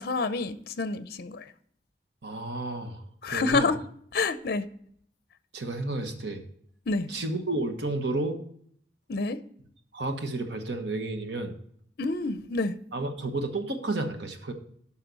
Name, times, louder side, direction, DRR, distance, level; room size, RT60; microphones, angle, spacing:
voice 1, 0.0-1.4 3.2-3.8 4.1-4.6 6.9-7.1 9.1-9.4 12.0-12.7, left 3 dB, 55° left, 0.5 m, -28 dB
voice 2, 2.2-3.7 5.5-6.4 7.1-8.4 9.9-11.5 12.9-14.5, right 2 dB, 65° right, 1.1 m, -31 dB
11.5 x 5.6 x 4.0 m
head